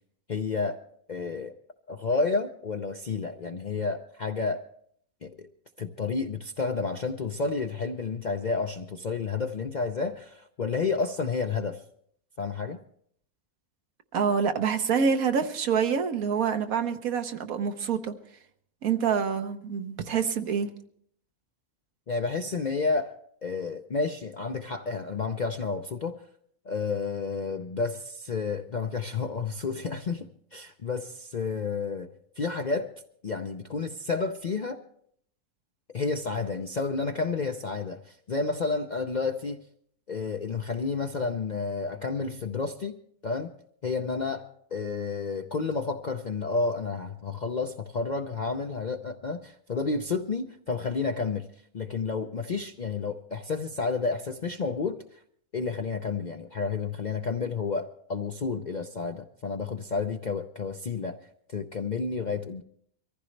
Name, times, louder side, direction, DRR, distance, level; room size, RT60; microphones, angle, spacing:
voice 1, 0.3-0.8 1.1-1.6 1.9-4.6 5.2-5.5 5.8-11.8 12.4-12.8 22.1-23.1 23.4-26.2 26.6-32.9 33.2-34.8 35.9-39.6 40.1-43.0 43.2-43.5 43.8-51.5 51.7-55.2 55.5-61.2 61.5-62.6, left 4 dB, 50° left, 5 dB, 0.5 m, -30 dB
voice 2, 14.1-18.1 18.8-20.7, right 6 dB, 70° right, 8 dB, 1.4 m, -26 dB
23.5 x 15.0 x 3.2 m, 0.66 s
omnidirectional pair, 1.5 m